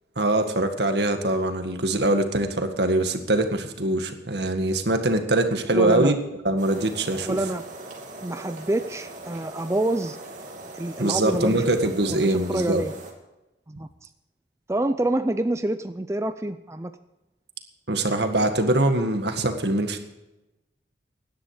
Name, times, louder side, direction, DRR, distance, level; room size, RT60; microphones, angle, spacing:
voice 1, 0.2-6.2 6.5-7.4 11.0-12.8 17.9-20.0, right 1 dB, 70° right, 6 dB, 1.8 m, -23 dB
voice 2, 5.7-6.1 7.3-7.7 8.2-10.2 10.7-12.9 13.7-14.1 14.7-16.9, right 1 dB, 15° right, 9 dB, 0.4 m, -27 dB
sound 1, 6.6-13.1, right 2 dB, 45° right, 2.7 m, -41 dB
17.5 x 11.5 x 4.9 m, 0.99 s
head